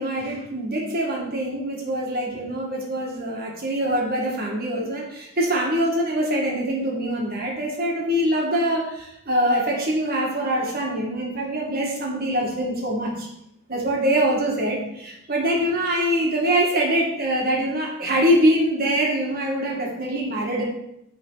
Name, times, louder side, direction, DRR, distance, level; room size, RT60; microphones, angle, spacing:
voice 1, 0.0-13.3 13.7-20.6, equal, 40° right, -2 dB, 1.7 m, -24 dB
9.6 x 3.9 x 3.9 m, 0.80 s
head